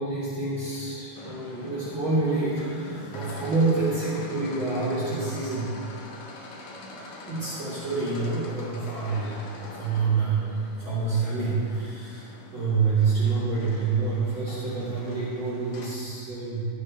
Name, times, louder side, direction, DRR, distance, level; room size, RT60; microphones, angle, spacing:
voice 1, 0.0-5.7 7.3-10.6 10.8-16.7, right 4 dB, 35° right, -11 dB, 3.7 m, -27 dB
sound 1, 1.1-15.9, left 2 dB, 60° left, 2.4 m, -43 dB
14.0 x 11.5 x 3.3 m, 2.5 s
omnidirectional pair, 4.4 m